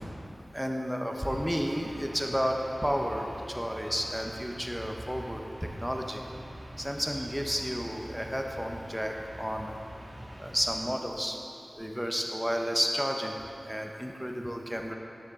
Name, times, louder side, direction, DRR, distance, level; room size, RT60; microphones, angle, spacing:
voice 1, 0.5-6.2 6.8-9.8 10.4-11.4 11.8-13.4 13.7-14.9, equal, 5° right, 2 dB, 0.8 m, -32 dB
sound 1, 1.2-10.8, right 1 dB, 45° right, 1.6 m, -44 dB
9.6 x 6.4 x 3.7 m, 2.9 s
wide cardioid pair, 45°, 0 cm